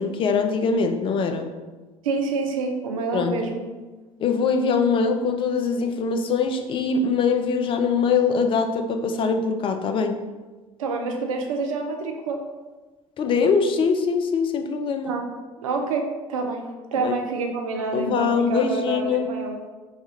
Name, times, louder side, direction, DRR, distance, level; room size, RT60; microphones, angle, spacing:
voice 1, 0.0-1.5 3.1-3.4 4.2-10.3 13.2-15.1 16.9-17.2 17.9-19.3, left 5 dB, 30° left, 6 dB, 0.3 m, -23 dB
voice 2, 2.0-3.6 10.8-12.4 15.0-15.2 15.6-16.6 16.9-19.5, right 4 dB, 75° right, 3 dB, 0.4 m, -27 dB
3.1 x 2.3 x 2.9 m, 1.3 s
figure-of-eight pair, 60°, 18 cm